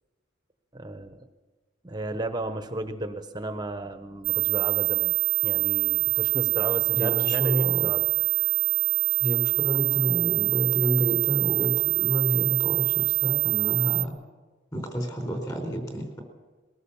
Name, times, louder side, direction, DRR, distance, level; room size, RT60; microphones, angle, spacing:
voice 1, 0.7-1.3 1.8-5.2 5.4-8.0 8.4-8.5, right 2 dB, 20° right, 7 dB, 1.1 m, -34 dB
sound 1, 4.2-14.0, right 17 dB, 45° right, 0.7 m, -25 dB
voice 2, 7.0-7.9 9.2-14.1 14.7-16.2, equal, 20° left, 4 dB, 4.3 m, -29 dB
21.5 x 18.0 x 7.2 m, 1.3 s
head